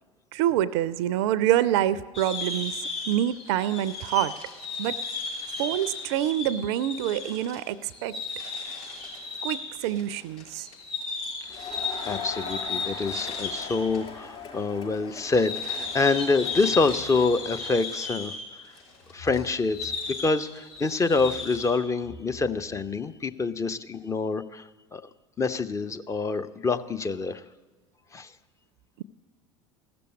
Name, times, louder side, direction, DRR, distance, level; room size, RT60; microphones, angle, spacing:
voice 1, 0.3-4.3 4.8-5.0 5.6-8.2 9.4-10.7, right 12 dB, 60° right, 17 dB, 0.4 m, -26 dB
sound 1, 2.1-14.0 14.3-14.4 15.1-21.8, left 4 dB, 65° left, 5.5 m, -35 dB
voice 2, 11.4-18.3 19.1-19.9 20.2-25.1 25.4-27.4 28.1-28.3, left 3 dB, 20° left, 9 dB, 0.6 m, -26 dB
Crowd, 11.5-18.1, left 6 dB, 35° left, 5.4 m, -41 dB
sound 2, 16.5-17.6 19.0-20.4 20.9-23.4, equal, 85° left, 5.8 m, -49 dB
14.5 x 6.9 x 9.4 m, 1.4 s
figure-of-eight pair, 70°, 16 cm